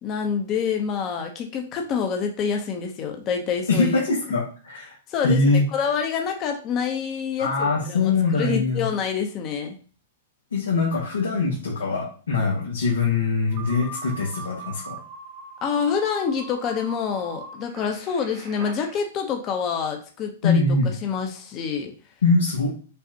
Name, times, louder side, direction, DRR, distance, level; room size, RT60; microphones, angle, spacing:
voice 1, 0.0-4.0 5.1-9.8 15.6-20.6 21.0-21.9, left 6 dB, 35° left, 3 dB, 0.8 m, -27 dB
voice 2, 3.7-4.9 5.2-5.6 7.4-8.9 10.5-15.0 20.4-20.9 22.2-22.7, left 3 dB, 90° left, -4 dB, 1.2 m, -22 dB
sound 1, 13.5-19.0, right 3 dB, 50° right, 1.4 m, -40 dB
5.3 x 2.5 x 2.8 m, 0.39 s
hypercardioid pair, 120°, 0 cm